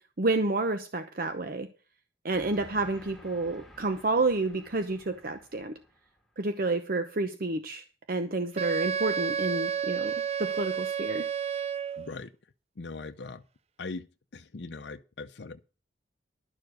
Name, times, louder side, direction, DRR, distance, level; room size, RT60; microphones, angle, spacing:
voice 1, 0.2-1.7 2.2-5.8 6.4-11.2, right 2 dB, 50° right, 0.8 m, -30 dB
Train, 2.3-6.2, left 1 dB, ahead, 2.1 m, -53 dB
Wind instrument woodwind instrument, 8.6-12.1, right 7 dB, 35° right, 0.4 m, -31 dB
voice 2, 12.0-12.3 12.8-13.4 13.8-14.1 14.3-15.6, left 3 dB, 70° left, 0.7 m, -40 dB
12.0 x 6.9 x 6.4 m
head